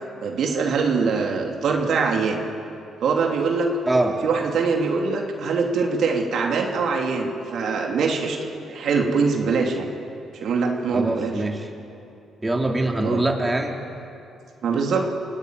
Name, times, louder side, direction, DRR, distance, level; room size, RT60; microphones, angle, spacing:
voice 1, 0.2-2.4 3.0-3.7 4.2-8.4 8.7-9.9 10.3-11.3 13.0-13.2 14.6-15.1, right 4 dB, 65° right, 2 dB, 2.8 m, -23 dB
voice 2, 3.9-4.2 10.9-11.7 12.4-13.8, right 2 dB, 15° right, 1 dB, 2.8 m, -23 dB
28.0 x 17.0 x 9.6 m, 2.7 s
cardioid pair, 90°, 0 cm